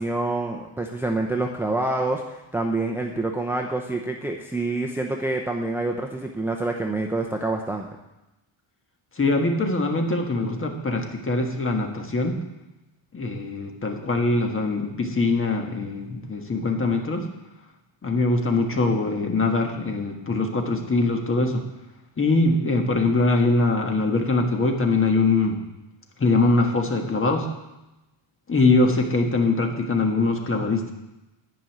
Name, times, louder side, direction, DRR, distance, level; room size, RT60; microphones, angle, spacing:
voice 1, 0.0-7.9, right 2 dB, 5° right, 1 dB, 0.7 m, -27 dB
voice 2, 9.2-12.4 13.1-17.2 18.0-21.6 22.2-25.6 26.2-27.5 28.5-30.9, left 3 dB, 25° left, 3 dB, 1.5 m, -22 dB
11.0 x 5.5 x 8.7 m, 0.98 s
cardioid pair, 135°, 48 cm